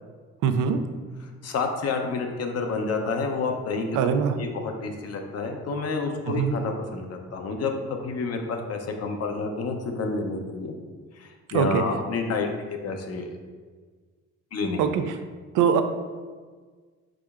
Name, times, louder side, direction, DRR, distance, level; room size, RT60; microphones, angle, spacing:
voice 1, 0.4-0.8 3.9-4.4 6.4-6.5 11.5-11.8 14.8-15.0 15.5-15.8, right 7 dB, 85° right, 8 dB, 0.5 m, -22 dB
voice 2, 1.4-3.9 4.4-10.7 11.1-12.5 12.8-13.3 14.5-15.1, left 4 dB, 55° left, 4 dB, 0.7 m, -29 dB
4.9 x 4.2 x 2.4 m, 1.5 s
cardioid pair, 90°, 30 cm